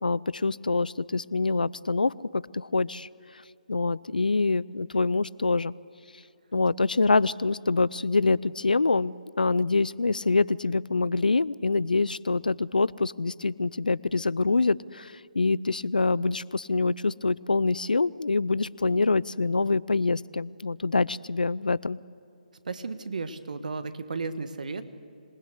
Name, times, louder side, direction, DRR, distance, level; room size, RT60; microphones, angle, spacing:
voice 1, 0.0-3.1 3.7-5.7 6.5-22.0, left 3 dB, 80° left, 21 dB, 0.5 m, -25 dB
voice 2, 22.6-24.8, right 4 dB, 65° right, 11 dB, 1.6 m, -34 dB
26.5 x 19.5 x 8.1 m, 2.7 s
figure-of-eight pair, 140°, 5 cm